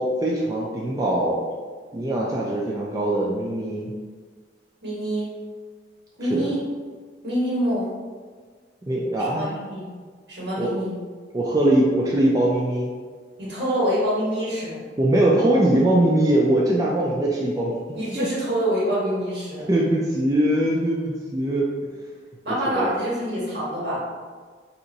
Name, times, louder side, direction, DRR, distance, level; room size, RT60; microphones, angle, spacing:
voice 1, 0.0-1.4 1.9-3.9 6.3-6.5 8.9-9.5 10.6-10.7 11.3-12.9 15.0-17.7 18.2-18.3 19.7-21.7 22.7-22.9, right 1 dB, 20° right, -4 dB, 0.3 m, -21 dB
voice 2, 4.8-5.3 6.2-6.6 7.2-8.0 9.2-9.9 10.3-10.9 13.4-14.8 17.9-19.7 22.4-24.0, equal, 65° right, -8 dB, 1.5 m, -26 dB
2.8 x 2.5 x 3.9 m, 1.6 s
head